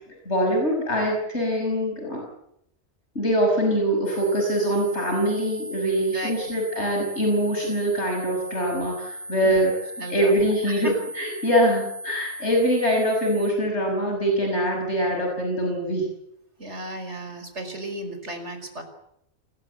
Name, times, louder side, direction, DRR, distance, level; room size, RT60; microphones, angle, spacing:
voice 1, 0.2-2.3 3.1-9.7 10.1-16.1, equal, 85° left, 1 dB, 6.5 m, -23 dB
sound 1, 4.1-13.5, right 1 dB, 40° left, 6.1 m, -38 dB
voice 2, 6.1-6.5 9.4-9.6 10.0-10.9 16.6-18.8, right 1 dB, 85° right, 7 dB, 5.3 m, -35 dB
28.0 x 20.5 x 8.2 m, 0.75 s
omnidirectional pair, 1.1 m